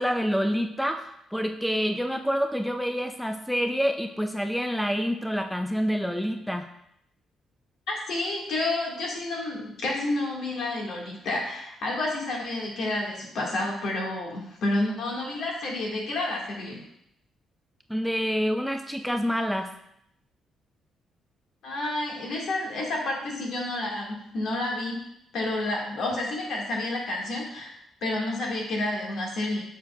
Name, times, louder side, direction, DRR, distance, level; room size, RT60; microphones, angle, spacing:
voice 1, 0.0-6.7 17.9-19.7, equal, ahead, 6 dB, 0.4 m, -27 dB
voice 2, 7.9-16.8 21.6-25.0 25.3-27.7 28.0-29.6, left 2 dB, 70° left, -2 dB, 1.8 m, -30 dB
6.4 x 6.3 x 2.4 m, 0.74 s
cardioid pair, 90°, 0 cm